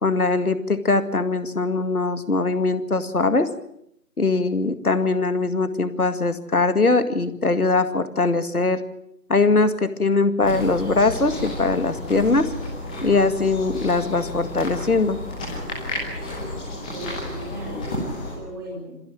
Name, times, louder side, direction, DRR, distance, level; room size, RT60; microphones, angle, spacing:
voice 1, 0.0-3.5 4.2-8.8 9.3-12.5 13.0-15.2, left 3 dB, 60° left, 10 dB, 2.2 m, -21 dB
sound 1, 10.4-18.3, left 1 dB, 5° left, 1.7 m, -32 dB
voice 2, 16.8-19.0, equal, 15° right, -3 dB, 4.4 m, -37 dB
28.5 x 15.5 x 8.8 m, 0.75 s
figure-of-eight pair, 160°, 49 cm